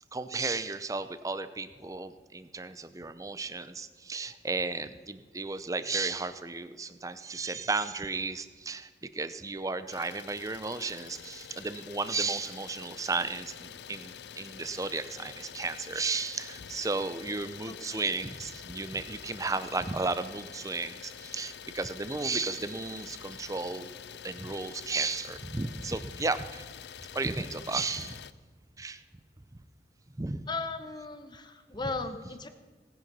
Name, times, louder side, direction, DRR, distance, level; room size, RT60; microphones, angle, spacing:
voice 1, 0.1-23.9 24.2-26.7 27.1-28.2 28.8-29.0 30.1-30.4, right 3 dB, 20° right, 12 dB, 0.6 m, -34 dB
Idling, 9.9-28.3, left 8 dB, 70° left, 0.5 m, -46 dB
voice 2, 17.7-18.0 30.5-32.5, left 3 dB, 25° left, 9 dB, 0.9 m, -37 dB
18.0 x 10.0 x 5.4 m, 1.4 s
head